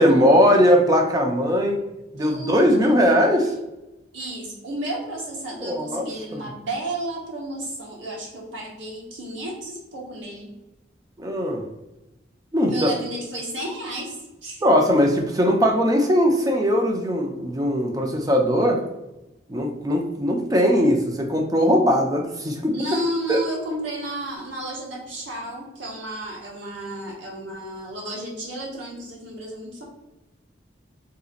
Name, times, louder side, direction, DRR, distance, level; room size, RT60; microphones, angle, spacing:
voice 1, 0.0-1.8 2.1-3.5 5.6-6.4 11.2-11.6 12.5-12.9 14.6-18.8 19.5-22.8 23.3-23.4, equal, 20° right, 2 dB, 0.4 m, -20 dB
voice 2, 2.2-3.2 4.1-10.5 12.7-14.6 22.7-29.8, right 1 dB, 75° right, -2 dB, 1.0 m, -32 dB
3.9 x 2.7 x 2.5 m, 0.98 s
head